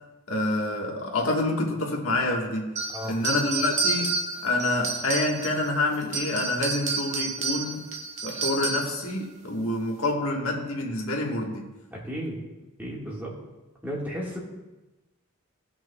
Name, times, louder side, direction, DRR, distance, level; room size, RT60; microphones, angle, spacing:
voice 1, 0.3-2.7 3.1-7.8 8.2-11.7, left 2 dB, 75° left, 0 dB, 1.4 m, -27 dB
sound 1, 2.8-5.7 6.0-9.0, right 3 dB, 35° right, 1.0 m, -30 dB
voice 2, 11.9-12.4 12.8-13.3 13.8-14.4, equal, 10° right, -4 dB, 1.6 m, -33 dB
17.5 x 5.9 x 2.3 m, 1.1 s
head